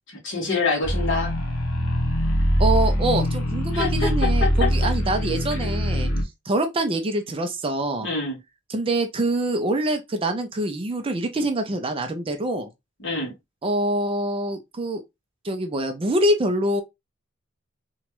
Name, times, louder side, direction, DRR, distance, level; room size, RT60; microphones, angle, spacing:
voice 1, 0.2-1.3 3.7-4.7 5.6-5.7 8.0-8.4 13.0-13.3, left 4 dB, 60° left, 1.4 m, -26 dB
sound 1, 0.8-6.2, equal, 85° left, 0.8 m, -23 dB
voice 2, 2.6-6.1 6.5-8.1 8.7-12.7 13.6-15.0 15.4-16.8, right 1 dB, 25° right, 0.4 m, -25 dB
3.0 x 2.3 x 2.9 m
head